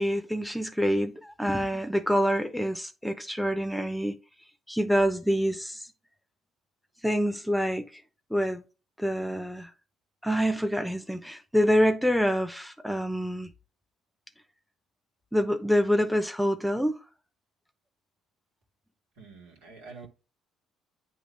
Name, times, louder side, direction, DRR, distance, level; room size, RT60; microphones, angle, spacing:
voice 1, 0.0-4.2 4.7-5.8 7.0-7.8 8.3-8.6 9.0-9.7 10.2-13.5 15.3-17.0, equal, ahead, 0.8 m, -26 dB
voice 2, 19.2-20.1, right 4 dB, 80° right, 1.9 m, -47 dB
8.8 x 3.0 x 5.3 m
hypercardioid pair, 55°, 0 cm